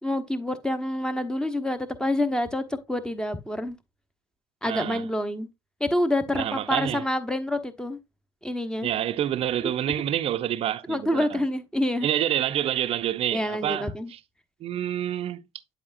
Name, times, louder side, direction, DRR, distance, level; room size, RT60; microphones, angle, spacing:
voice 1, 0.0-3.8 4.6-5.5 5.8-8.0 8.4-8.9 9.6-9.7 10.9-12.1 13.3-14.1, left 1 dB, 5° left, 1.1 m, -27 dB
voice 2, 4.7-5.1 6.3-7.1 8.8-11.4 12.0-14.2 14.6-15.4, right 11 dB, 35° right, 0.6 m, -28 dB
11.0 x 5.0 x 2.6 m
figure-of-eight pair, 65°, 16 cm